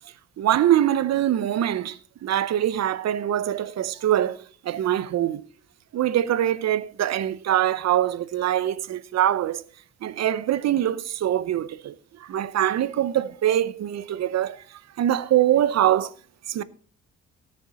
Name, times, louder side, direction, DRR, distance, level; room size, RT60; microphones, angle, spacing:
voice 1, 0.4-5.4 5.9-9.6 10.0-16.1 16.5-16.6, right 11 dB, 60° right, 0.7 m, -23 dB
17.5 x 6.6 x 4.2 m
cardioid pair, 90°, 30 cm